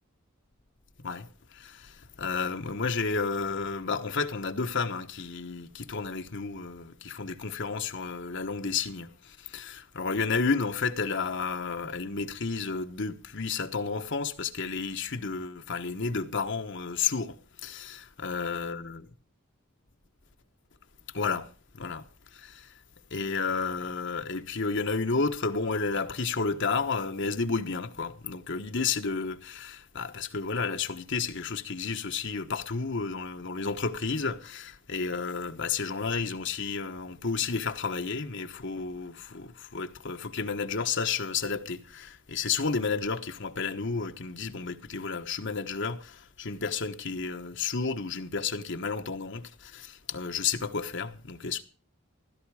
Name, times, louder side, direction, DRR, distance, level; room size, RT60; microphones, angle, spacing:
voice 1, 1.0-19.0 21.1-21.5 21.7-22.8 23.1-51.6, left 4 dB, 60° left, 1.3 m, -32 dB
15.5 x 13.0 x 4.8 m
head